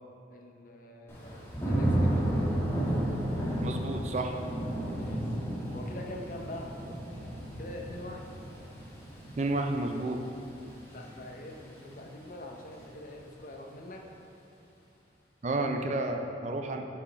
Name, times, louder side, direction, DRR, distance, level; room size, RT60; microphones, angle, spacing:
voice 1, 0.3-2.6 4.9-5.4 5.7-6.7 7.6-8.3 10.5-14.0, left 1 dB, 45° left, 2 dB, 0.7 m, -44 dB
Thunder / Rain, 1.1-12.0 12.4-12.9, right 1 dB, 15° left, 1.3 m, -33 dB
voice 2, 3.6-4.4 9.4-10.2 15.4-16.9, right 2 dB, 40° right, 4 dB, 0.4 m, -31 dB
6.9 x 5.0 x 4.5 m, 2.8 s
head